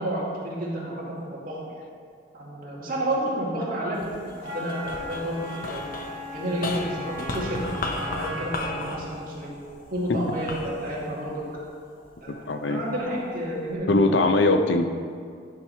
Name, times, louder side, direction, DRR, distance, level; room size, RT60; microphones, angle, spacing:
voice 1, 0.0-1.8 2.3-5.8 6.3-9.5 9.9-11.4 12.2-12.4 12.7-14.0, right 1 dB, 50° right, -5 dB, 2.2 m, -30 dB
sound 1, 3.9-12.4 13.0-13.7, left 2 dB, 50° left, 0.9 m, -36 dB
Wind instrument woodwind instrument, 4.4-8.9, left 1 dB, 85° right, 1.8 m, -38 dB
voice 2, 12.5-12.8 13.9-14.9, left 2 dB, 75° left, 7 dB, 0.6 m, -20 dB
10.5 x 4.8 x 5.7 m, 2.1 s
head